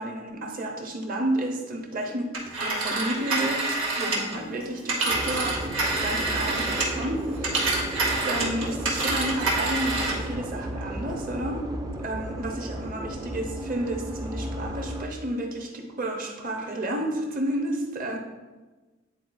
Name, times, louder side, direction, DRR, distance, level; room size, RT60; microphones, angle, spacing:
voice 1, 0.0-2.3 2.6-5.6 6.0-7.6 8.2-11.7 12.0-18.2, right 1 dB, 45° right, 2 dB, 0.9 m, -31 dB
Telephone, 2.3-7.1 7.4-10.3, right 2 dB, 85° right, 1.6 m, -27 dB
sound 1, 5.1-15.0, right 1 dB, 20° right, 0.4 m, -34 dB
9.8 x 4.0 x 2.6 m, 1.2 s
head